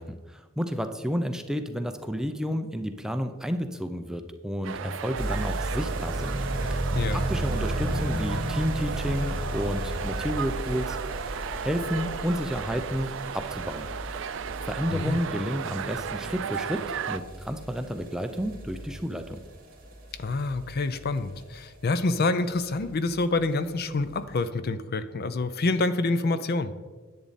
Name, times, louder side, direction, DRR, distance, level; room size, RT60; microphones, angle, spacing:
voice 1, 0.0-6.4 7.1-13.9 14.2-19.4, equal, 5° right, 7 dB, 0.5 m, -31 dB
sound 1, 4.6-17.2, right 7 dB, 60° right, 0.4 m, -35 dB
sound 2, 5.2-21.9 22.2-22.3 22.5-22.6 22.8-22.9 23.2-23.3 23.9-24.0, right 1 dB, 40° right, 2.6 m, -34 dB
voice 2, 20.2-26.7, left 3 dB, 45° left, 12 dB, 0.5 m, -27 dB
10.5 x 8.6 x 4.1 m, 1.4 s
head